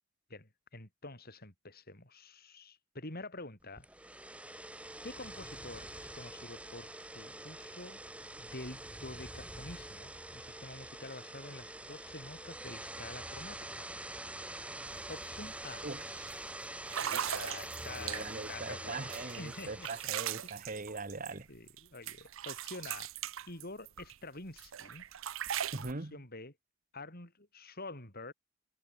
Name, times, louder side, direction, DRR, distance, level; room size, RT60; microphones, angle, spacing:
voice 1, 0.3-3.9 5.0-8.0 8.4-14.3 15.1-15.9 16.9-19.9 20.4-20.7 21.5-23.1 23.5-25.0 25.9-26.5 26.9-28.3, left 2 dB, 45° left, 7.2 m, -48 dB
sound 1, 3.8-20.3, right 1 dB, 5° right, 2.8 m, -45 dB
sound 2, 14.9-15.0 15.4-15.7 16.3-16.4 16.9-18.5 19.1-21.8 22.1-24.2 24.6-25.9, right 10 dB, 65° right, 0.7 m, -39 dB
voice 2, 15.8-16.3 17.9-21.5 25.7-26.2, right 3 dB, 40° right, 1.4 m, -41 dB
head